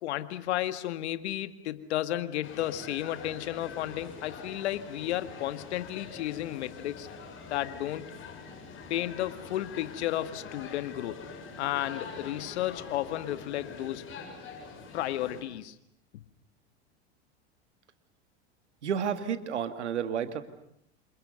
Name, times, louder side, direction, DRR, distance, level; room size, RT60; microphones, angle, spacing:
voice 1, 0.0-7.1 7.5-8.1 8.9-11.2 11.6-14.0 14.9-15.8 16.1-16.2, left 13 dB, 75° left, 11 dB, 1.9 m, -33 dB
sound 1, 2.4-15.4, left 5 dB, 35° left, 7.8 m, -45 dB
voice 2, 18.8-20.4, right 8 dB, 90° right, 9 dB, 2.2 m, -31 dB
28.5 x 27.0 x 6.7 m, 0.73 s
hypercardioid pair, 95°, 34 cm